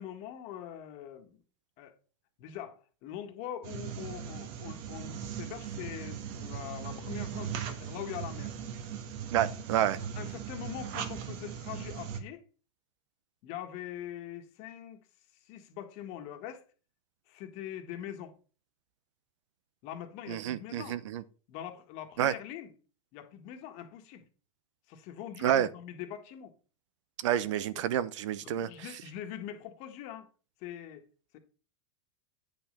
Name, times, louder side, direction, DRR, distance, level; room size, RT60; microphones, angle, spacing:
voice 1, 0.0-1.4 1.8-1.9 2.4-8.6 10.0-12.4 13.4-15.0 15.4-16.6 17.3-18.3 19.8-21.0 21.5-22.7 23.1-24.2 24.9-26.5 27.7-27.8 28.4-30.3 30.6-31.1 31.3-31.4, left 10 dB, 45° left, 1.5 m, -43 dB
sound 1, 3.6-12.2, right 8 dB, 50° right, 1.4 m, -39 dB
voice 2, 9.3-10.0 20.3-21.2 22.2-22.3 25.4-25.7 27.2-28.7, right 11 dB, 70° right, 0.8 m, -29 dB
9.0 x 5.4 x 5.2 m
supercardioid pair, 145°, 16 cm